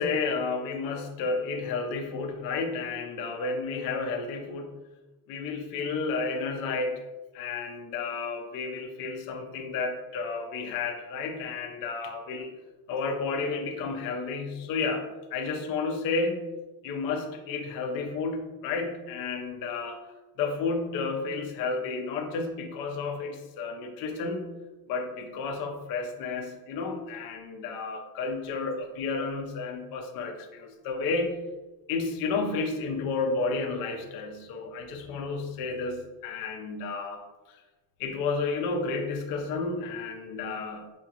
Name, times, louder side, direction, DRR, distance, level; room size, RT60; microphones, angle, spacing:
voice 1, 0.0-4.8 5.3-7.0 7.3-12.5 12.9-16.5 16.8-20.1 20.4-24.5 24.9-31.4 31.9-37.6 38.0-40.9, left 4 dB, 65° left, 4 dB, 0.7 m, -31 dB
5.0 x 2.4 x 2.8 m, 1.1 s
cardioid pair, 120°, 37 cm